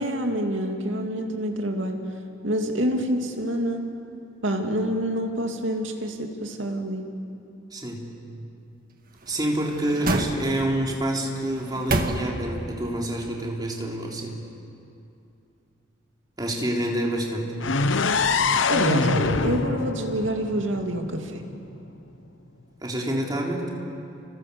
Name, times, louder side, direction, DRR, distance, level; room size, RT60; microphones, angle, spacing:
voice 1, 0.0-2.0 2.4-3.8 4.4-7.0 18.7-21.4, equal, 70° right, 3 dB, 2.7 m, -27 dB
voice 2, 7.7-8.1 9.3-14.3 16.4-17.6 22.8-23.7, right 1 dB, 20° right, -1 dB, 3.6 m, -27 dB
sound 1, 9.2-10.9 11.4-12.7 13.1-13.2, right 2 dB, 45° right, 1.7 m, -29 dB
sound 2, 17.6-21.5, left 4 dB, 70° left, 0.9 m, -24 dB
30.0 x 25.0 x 7.1 m, 2.7 s
head